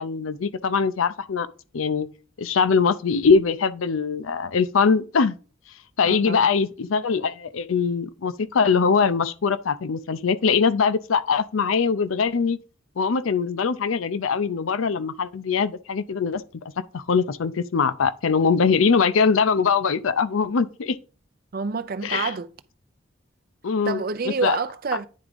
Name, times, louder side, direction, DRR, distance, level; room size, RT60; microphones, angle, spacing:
voice 1, 0.0-1.5 1.7-2.1 2.4-5.4 6.0-12.6 13.0-16.4 16.9-21.0 22.0-22.3 23.6-24.0 24.4-24.6, left 5 dB, 80° left, 0.5 m, -22 dB
voice 2, 6.0-6.5 21.5-22.5 23.9-25.1, right 5 dB, 45° right, 0.5 m, -28 dB
9.5 x 3.6 x 5.1 m
head